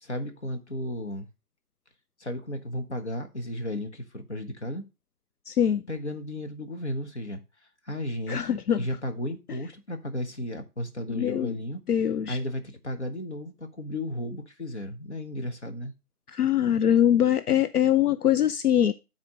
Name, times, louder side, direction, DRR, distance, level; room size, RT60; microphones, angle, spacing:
voice 1, 0.0-1.3 2.2-4.8 5.9-7.4 7.8-11.8 12.3-15.9, left 1 dB, 45° left, 1.2 m, -34 dB
voice 2, 5.5-5.8 8.3-8.9 11.2-11.6 11.9-12.4 16.3-18.9, left 10 dB, 75° left, 0.6 m, -23 dB
9.3 x 4.4 x 4.9 m
figure-of-eight pair, 175°, 46 cm